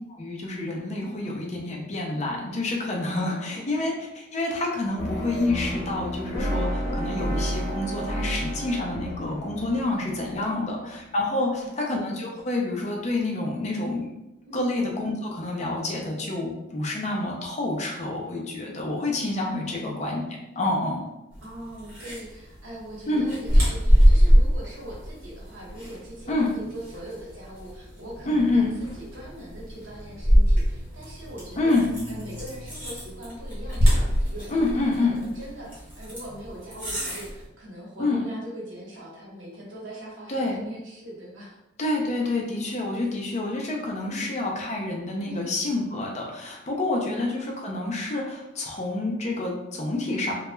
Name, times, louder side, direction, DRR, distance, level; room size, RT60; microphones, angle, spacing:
voice 1, 0.2-14.2 14.5-20.2 20.6-21.0 23.1-23.2 26.3-26.5 28.2-28.7 31.6-31.9 34.5-35.2 38.0-38.2 40.3-40.6 41.8-50.3, left 2 dB, 35° left, 0 dB, 0.4 m, -28 dB
sound 1, 5.0-11.1, equal, 60° left, 0.8 m, -31 dB
voice 2, 11.4-11.7 14.4-14.6 19.6-19.9 21.4-31.7 32.1-41.6 42.8-43.1 44.0-44.3 45.2-45.5 46.9-47.2 48.9-49.0, right 1 dB, 80° right, -4 dB, 0.9 m, -41 dB
sound 2, 21.3-37.5, equal, 10° right, 0.9 m, -26 dB
sound 3, 23.5-29.4 30.0-30.1 30.7-30.9 33.0-35.6, equal, 50° right, 1.1 m, -27 dB
2.2 x 2.0 x 3.0 m, 0.93 s
head